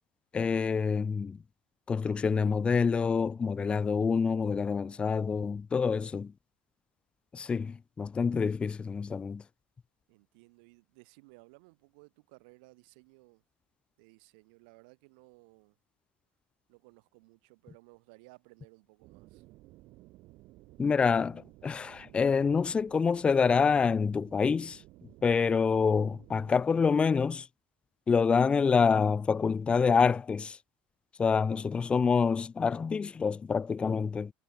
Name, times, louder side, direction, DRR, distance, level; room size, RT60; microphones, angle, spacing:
voice 1, 0.3-1.4 1.9-6.3 7.3-9.4 20.8-24.8 25.2-27.5 28.1-30.6 31.2-34.3, left 5 dB, 20° left, 0.4 m, -27 dB
voice 2, 10.1-13.4 14.0-15.8 16.7-19.4, right 29 dB, 80° right, 6.0 m, -58 dB
sound 1, 19.0-26.6, right 19 dB, 65° right, 2.2 m, -55 dB
supercardioid pair, 105°, 5 cm